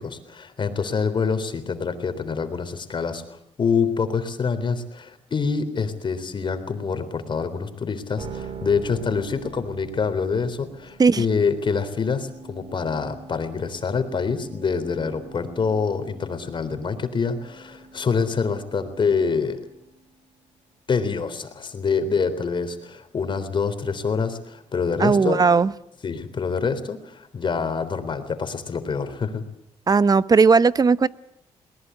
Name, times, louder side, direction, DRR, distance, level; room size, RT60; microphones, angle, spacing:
voice 1, 0.0-19.6 20.9-25.4 26.0-29.4, left 5 dB, 45° left, 10 dB, 3.6 m, -26 dB
sound 1, 8.2-20.5, right 5 dB, 50° right, 3.2 m, -44 dB
voice 2, 25.0-25.7 29.9-31.1, right 5 dB, 35° right, 17 dB, 0.9 m, -17 dB
22.0 x 19.0 x 8.1 m, 0.79 s
cardioid pair, 80°, 12 cm